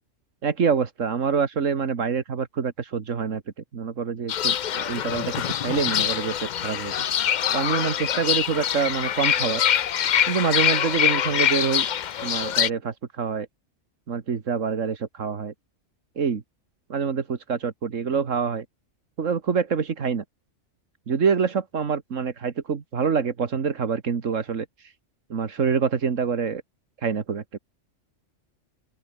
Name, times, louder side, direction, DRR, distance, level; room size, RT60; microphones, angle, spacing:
voice 1, 0.4-3.4 3.7-6.9 7.5-9.6 10.3-11.9 12.2-13.5 14.1-15.5 16.2-16.4 16.9-18.7 19.2-20.2 21.1-24.7 25.3-26.6 27.0-27.6, right 6 dB, 85° right, 2.0 m, -26 dB
Fowl / Bird, 4.3-12.7, left 9 dB, 55° left, 0.5 m, -24 dB
open air
omnidirectional pair, 1.3 m